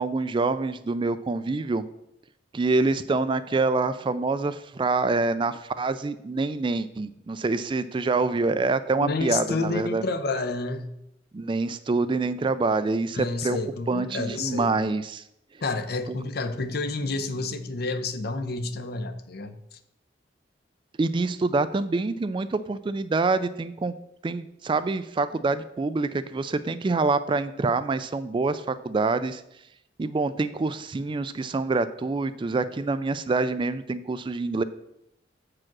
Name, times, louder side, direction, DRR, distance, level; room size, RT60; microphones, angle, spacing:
voice 1, 0.0-1.8 2.5-10.0 11.3-13.6 13.9-15.2 21.0-23.9 24.2-29.4 30.0-34.6, right 3 dB, 25° right, 13 dB, 0.3 m, -26 dB
voice 2, 9.0-10.9 13.1-14.7 15.6-19.8, left 3 dB, 55° left, 9 dB, 0.7 m, -30 dB
7.5 x 4.8 x 6.0 m, 0.81 s
head